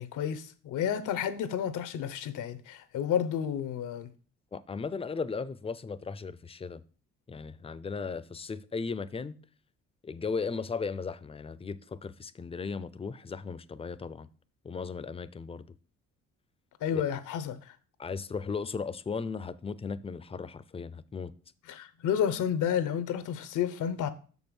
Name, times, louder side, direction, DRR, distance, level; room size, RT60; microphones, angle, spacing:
voice 1, 0.0-4.1 16.8-17.8 21.7-24.1, left 9 dB, 85° left, 0.9 m, -31 dB
voice 2, 4.5-6.8 7.3-9.4 10.0-14.3 14.6-15.6 16.9-17.0 18.0-21.4, left 5 dB, 20° left, 0.5 m, -36 dB
6.6 x 5.5 x 6.1 m
cardioid pair, 90°, 30 cm